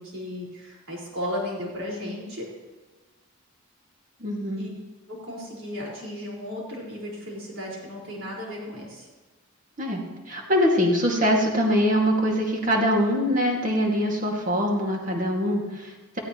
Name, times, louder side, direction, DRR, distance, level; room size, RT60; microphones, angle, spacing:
voice 1, 0.0-2.5 4.5-4.7 5.1-9.1, left 1 dB, 60° right, -3 dB, 4.9 m, -35 dB
voice 2, 4.2-4.7 9.8-16.2, equal, 35° right, 0 dB, 2.2 m, -23 dB
17.5 x 15.5 x 3.1 m, 1.2 s
head